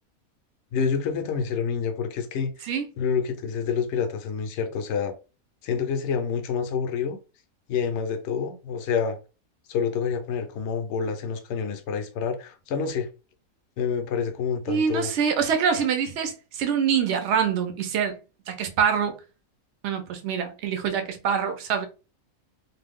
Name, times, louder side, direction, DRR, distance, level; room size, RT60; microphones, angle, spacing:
voice 1, 0.7-2.7 3.0-5.1 5.6-7.2 7.7-9.2 9.7-13.1 13.8-15.1, left 6 dB, 65° left, 0.8 m, -27 dB
voice 2, 14.7-18.2 18.5-19.1 19.8-21.9, right 7 dB, 60° right, 0.8 m, -25 dB
2.6 x 2.3 x 3.4 m
omnidirectional pair, 1.5 m